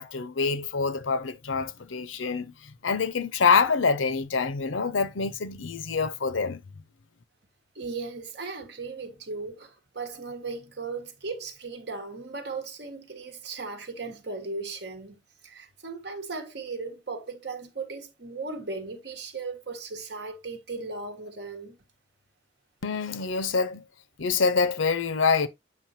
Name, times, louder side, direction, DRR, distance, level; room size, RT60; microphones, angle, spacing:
voice 1, 0.0-6.6 22.8-23.8 24.2-25.5, left 5 dB, 85° left, 0.7 m, -26 dB
voice 2, 7.7-21.8, right 4 dB, 60° right, 1.4 m, -37 dB
7.6 x 5.6 x 2.7 m
head